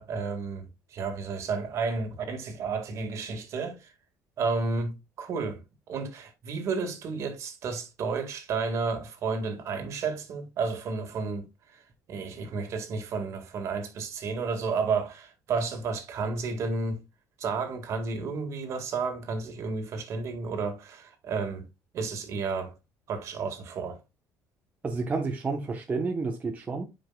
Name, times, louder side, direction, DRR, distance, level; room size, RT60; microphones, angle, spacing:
voice 1, 0.0-3.9 4.4-5.6 5.9-11.5 11.7-11.8 12.1-17.0 17.4-21.7 21.9-22.7 23.1-24.0, right 4 dB, 50° right, 1.9 m, -32 dB
voice 2, 24.8-26.8, right 4 dB, 25° right, 1.0 m, -30 dB
9.9 x 5.1 x 2.3 m
cardioid pair, 140°, 6 cm